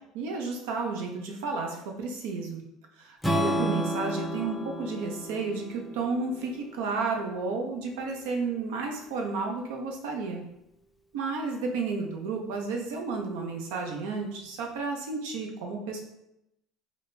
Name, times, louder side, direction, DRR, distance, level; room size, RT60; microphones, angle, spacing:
voice 1, 0.1-2.6 3.0-10.4 11.1-16.0, right 4 dB, 85° right, 2 dB, 0.7 m, -32 dB
Strum, 3.2-7.4, equal, 5° left, 0.4 m, -32 dB
4.1 x 2.1 x 3.3 m, 0.85 s
cardioid pair, 125°, 0 cm